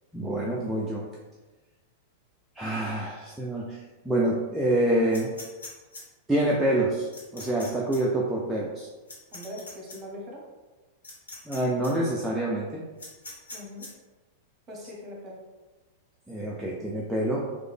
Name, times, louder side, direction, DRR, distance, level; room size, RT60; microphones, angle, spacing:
voice 1, 0.1-1.0 2.6-5.3 6.3-8.9 11.5-12.8 16.3-17.5, right 1 dB, 5° right, -5 dB, 0.4 m, -27 dB
sound 1, 5.1-6.0 7.1-7.7 7.9-8.0 9.1-10.0 11.0-11.6 11.8-11.9 13.0-13.9, left 2 dB, 75° left, 0.9 m, -42 dB
voice 2, 9.3-10.4 13.5-13.9 14.7-15.4, left 1 dB, 25° right, -3 dB, 0.9 m, -41 dB
3.2 x 2.1 x 3.4 m, 1.2 s
figure-of-eight pair, 95°, 0 cm